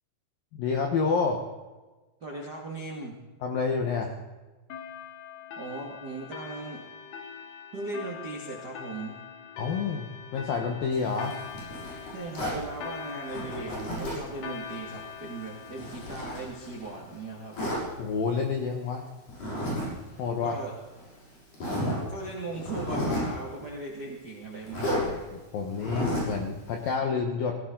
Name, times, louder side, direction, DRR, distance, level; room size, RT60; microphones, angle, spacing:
voice 1, 0.6-1.4 3.4-4.1 9.6-11.3 18.0-19.0 20.2-20.6 25.5-27.6, left 5 dB, 80° left, 3 dB, 2.0 m, -28 dB
voice 2, 2.2-3.1 5.6-6.8 7.7-9.2 12.1-17.5 20.4-20.7 22.1-25.2, right 2 dB, 80° right, -2 dB, 0.9 m, -38 dB
sound 1, 4.7-17.8, left 7 dB, 60° left, 3.5 m, -43 dB
Zipper (clothing), 10.9-12.6 13.3-14.3 14.7-16.9 17.5-17.8 19.3-19.9 20.2-20.3 21.0-21.1 21.5-22.0 22.5-23.4 24.7-25.0 25.7-26.4, equal, 40° left, 7.8 m, -32 dB
18.0 x 17.5 x 3.9 m, 1.2 s
omnidirectional pair, 5.9 m